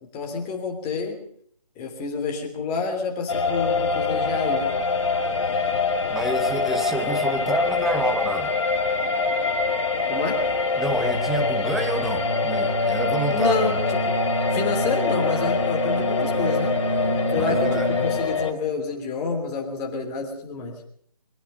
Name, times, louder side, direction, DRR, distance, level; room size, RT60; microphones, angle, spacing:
voice 1, 0.1-1.2 1.8-4.7 10.1-10.4 13.3-14.1 14.5-16.7 17.3-20.8, left 4 dB, 15° left, 1 dB, 3.1 m, -28 dB
sound 1, 3.3-18.5, left 4 dB, 50° left, 2.6 m, -24 dB
voice 2, 6.1-8.5 10.8-13.7 17.3-17.9, right 2 dB, ahead, 5 dB, 0.8 m, -28 dB
sound 2, 10.9-18.3, right 2 dB, 90° right, 3.0 m, -29 dB
24.0 x 18.0 x 6.8 m, 0.64 s
figure-of-eight pair, 155°, 20 cm